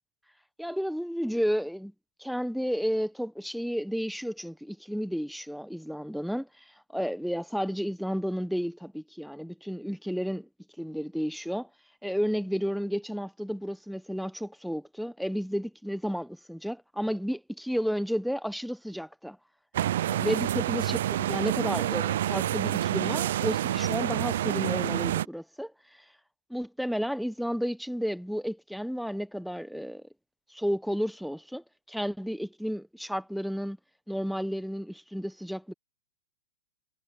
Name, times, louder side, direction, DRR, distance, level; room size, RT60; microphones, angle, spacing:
voice 1, 0.6-1.9 2.2-6.4 6.9-10.5 10.8-11.7 12.0-19.4 20.1-25.7 26.5-30.1 30.5-33.8 34.1-35.7, equal, ahead, 1.3 m, -32 dB
sound 1, 19.7-25.3, right 12 dB, 70° right, 0.6 m, -28 dB
hypercardioid pair, 135°, 0 cm